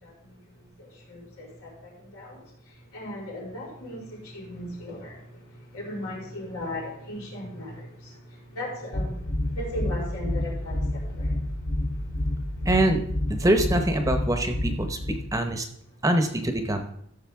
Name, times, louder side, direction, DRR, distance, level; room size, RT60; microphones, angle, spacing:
voice 1, 0.0-0.4 0.8-2.4 2.9-8.2 8.5-11.3 11.9-12.4, left 1 dB, 90° left, -4 dB, 4.8 m, -37 dB
sound 1, 8.9-15.3, left 1 dB, 55° left, 1.1 m, -28 dB
voice 2, 12.7-13.0 13.3-15.7 16.0-16.8, right 1 dB, 15° right, 6 dB, 0.8 m, -24 dB
14.5 x 6.6 x 3.5 m, 0.72 s
head